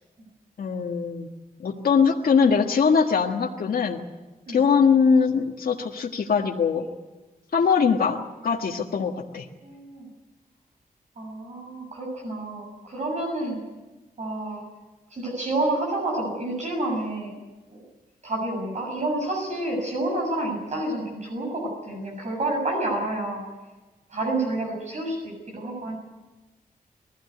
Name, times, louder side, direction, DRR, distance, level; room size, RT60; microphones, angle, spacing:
voice 1, 0.6-1.3 1.6-4.0 4.5-6.8 7.5-9.5, left 6 dB, 80° left, 1 dB, 1.6 m, -22 dB
voice 2, 9.6-10.1 11.2-13.6 14.2-14.6 15.1-17.3 17.7-17.8 18.2-23.4 24.1-26.0, right 2 dB, 50° right, -1 dB, 7.0 m, -29 dB
21.0 x 16.0 x 9.6 m, 1.2 s
wide cardioid pair, 175°, 15 cm